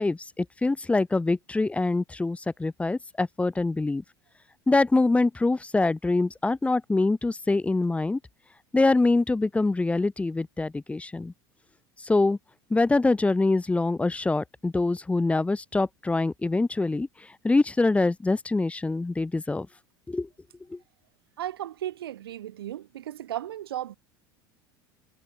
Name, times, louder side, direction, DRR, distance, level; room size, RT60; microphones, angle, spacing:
voice 1, 0.0-4.0 4.7-8.2 8.7-11.3 12.0-12.4 12.7-17.1 17.4-19.7 20.1-20.3 20.7-20.8, left 3 dB, 10° left, 0.6 m, -24 dB
voice 2, 21.4-24.0, right 12 dB, 85° right, 1.7 m, -35 dB
hypercardioid pair, 85°, 12 cm